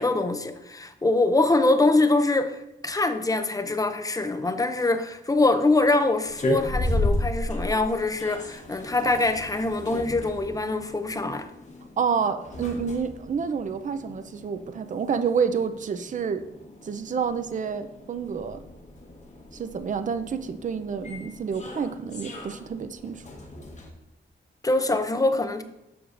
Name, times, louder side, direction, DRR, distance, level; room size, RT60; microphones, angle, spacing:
voice 1, 0.0-2.6 2.8-11.5 24.6-25.6, left 2 dB, 15° left, 0.5 m, -24 dB
sound 1, 6.2-23.9, left 1 dB, 35° left, 1.0 m, -35 dB
voice 2, 12.0-16.5 16.8-18.6 19.5-23.3, right 6 dB, 40° right, 0.4 m, -29 dB
7.8 x 6.7 x 2.5 m
wide cardioid pair, 160°, 20 cm